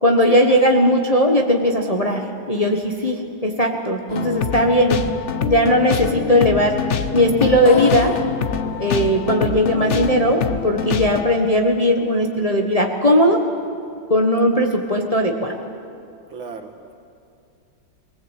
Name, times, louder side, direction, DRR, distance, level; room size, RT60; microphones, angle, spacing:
voice 1, 0.0-5.0 5.5-6.8 7.1-8.1 8.8-13.4 14.1-15.5, equal, 20° left, 2 dB, 1.1 m, -18 dB
sound 1, 4.1-11.2, left 7 dB, 55° left, 0.8 m, -25 dB
voice 2, 16.3-16.9, right 5 dB, 80° right, 3 dB, 2.6 m, -35 dB
21.0 x 19.0 x 8.3 m, 2.4 s
omnidirectional pair, 2.1 m